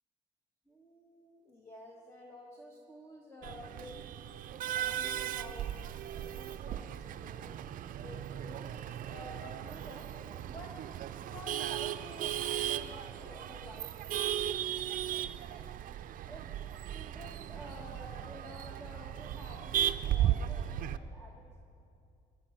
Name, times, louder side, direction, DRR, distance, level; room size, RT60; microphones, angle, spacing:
voice 1, 0.7-4.3 4.7-7.6 8.0-10.1 10.5-10.8 11.1-15.7 16.3-16.5 16.9-21.6, left 1 dB, 15° left, -1 dB, 1.5 m, -51 dB
Male speech man speaking / Laughter / Chatter, 3.4-21.0, right 11 dB, 55° right, 0.5 m, -36 dB
20.5 x 11.0 x 5.8 m, 2.6 s
cardioid pair, 110°, 17 cm